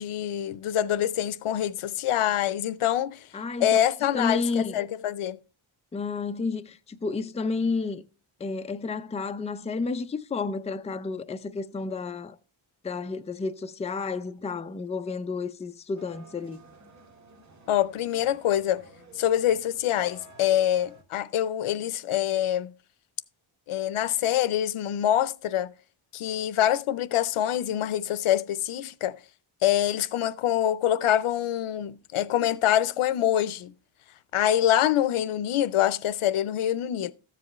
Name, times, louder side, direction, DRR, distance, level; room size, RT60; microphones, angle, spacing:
voice 1, 0.0-3.2 3.6-5.4 17.7-18.8 19.2-22.7 23.7-25.7 26.1-29.2 29.6-33.7 34.3-37.1, left 11 dB, 85° left, 0.7 m, -25 dB
voice 2, 3.3-3.8 4.1-4.8 5.9-8.0 8.4-12.4 12.8-16.6, left 4 dB, 15° left, 0.4 m, -31 dB
sound 1, 16.0-21.0, right 1 dB, 35° right, 1.8 m, -52 dB
13.5 x 7.5 x 3.1 m
wide cardioid pair, 135°, 49 cm